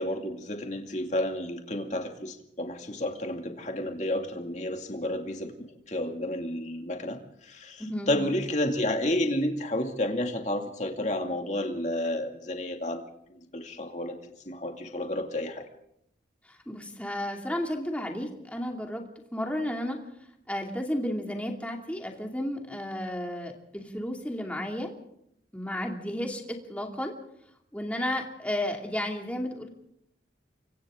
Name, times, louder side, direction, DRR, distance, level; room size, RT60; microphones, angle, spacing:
voice 1, 0.0-5.5 5.9-14.2 14.4-15.6, left 1 dB, 40° left, 3 dB, 2.5 m, -31 dB
voice 2, 7.8-8.1 16.4-19.0 19.3-20.0 20.5-24.9 25.5-27.1 27.7-29.7, left 1 dB, 10° left, 1 dB, 2.6 m, -33 dB
29.0 x 24.0 x 3.8 m, 0.74 s
head